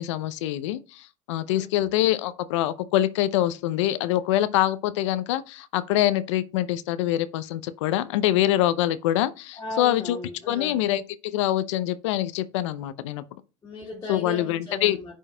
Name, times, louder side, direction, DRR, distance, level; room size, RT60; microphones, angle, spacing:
voice 1, 0.0-10.2 10.5-13.2 14.1-15.0, left 13 dB, 70° left, 0.6 m, -25 dB
voice 2, 1.5-1.9 9.5-10.8 13.6-15.2, left 2 dB, 20° left, 2.4 m, -37 dB
9.9 x 4.6 x 2.2 m
hypercardioid pair, 90°, 16 cm